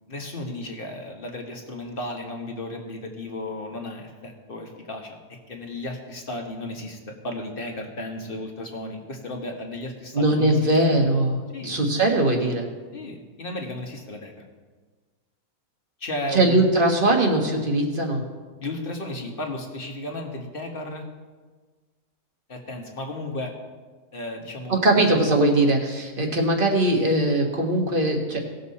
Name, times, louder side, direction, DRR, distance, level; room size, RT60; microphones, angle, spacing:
voice 1, 0.1-5.2 5.5-11.0 11.5-11.8 12.9-14.4 16.0-16.6 18.6-21.1 22.5-23.5 24.1-24.7, left 1 dB, 40° left, 2 dB, 1.5 m, -34 dB
voice 2, 10.1-11.4 11.6-12.7 16.3-18.2 24.7-28.4, right 1 dB, 35° right, 1 dB, 1.6 m, -20 dB
18.5 x 6.7 x 4.2 m, 1.4 s
omnidirectional pair, 1.6 m